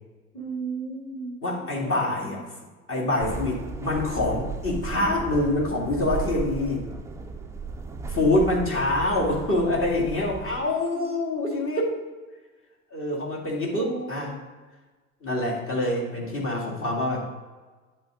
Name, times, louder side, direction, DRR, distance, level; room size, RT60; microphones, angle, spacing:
voice 1, 0.3-1.4 1.8-2.4 10.6-11.2 11.5-11.7 13.8-14.3, right 3 dB, 15° left, -4 dB, 1.6 m, -36 dB
voice 2, 1.4-2.5 2.9-6.9 8.1-12.0 12.9-14.4 15.2-17.3, left 2 dB, 30° left, -3 dB, 2.1 m, -25 dB
sound 1, 3.2-10.6, right 4 dB, 5° right, 0.4 m, -35 dB
10.0 x 3.8 x 3.6 m, 1.3 s
figure-of-eight pair, 75°, 41 cm